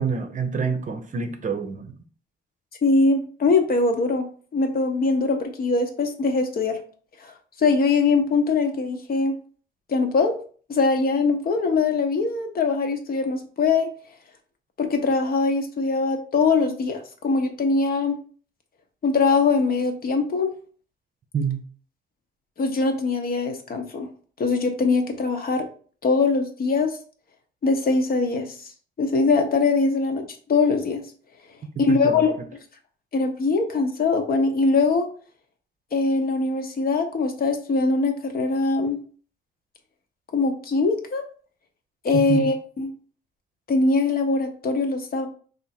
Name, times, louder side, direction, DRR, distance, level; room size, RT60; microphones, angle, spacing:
voice 1, 0.0-1.9 21.3-21.6 31.9-32.3 42.3-42.5, right 5 dB, 40° right, 7 dB, 0.7 m, -27 dB
voice 2, 2.8-6.8 7.2-7.3 7.6-9.3 9.9-10.4 10.7-13.9 14.8-18.2 19.0-20.5 22.6-24.1 24.4-25.7 26.0-27.0 27.6-28.6 29.0-30.2 30.5-31.0 31.8-32.3 33.1-35.1 35.9-39.0 40.3-41.2 42.0-42.9 43.7-45.3, left 4 dB, 50° left, 5 dB, 0.9 m, -22 dB
3.5 x 2.6 x 4.2 m, 0.43 s
cardioid pair, 90°, 20 cm